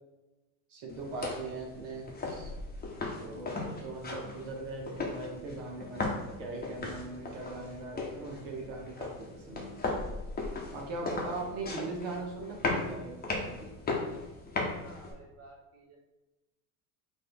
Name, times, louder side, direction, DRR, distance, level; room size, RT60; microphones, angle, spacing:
voice 1, 0.7-2.5 3.2-9.8 10.7-13.7, right 2 dB, 60° right, -1 dB, 1.1 m, -40 dB
sound 1, 0.9-15.1, left 3 dB, 20° left, 0.9 m, -37 dB
voice 2, 14.8-16.0, right 3 dB, 30° right, -1 dB, 1.0 m, -53 dB
4.0 x 2.6 x 3.4 m, 1.0 s
hypercardioid pair, 75°, 47 cm